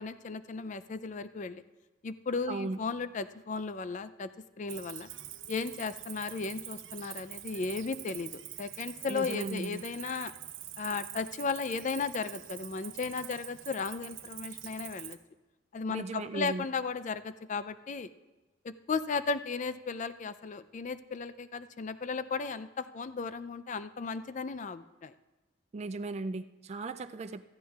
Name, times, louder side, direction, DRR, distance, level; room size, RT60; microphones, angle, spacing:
voice 1, 0.0-1.6 2.0-4.3 4.6-5.1 5.5-10.3 10.8-15.2 15.7-18.1 18.6-25.1, left 4 dB, 40° left, 13 dB, 0.4 m, -35 dB
voice 2, 2.5-2.8 9.1-9.8 15.9-16.7 25.7-27.4, right 3 dB, 35° right, 9 dB, 0.3 m, -36 dB
Cricket, 4.7-15.1, right 12 dB, 70° right, 0.7 m, -45 dB
16.5 x 13.5 x 2.4 m, 1.1 s
head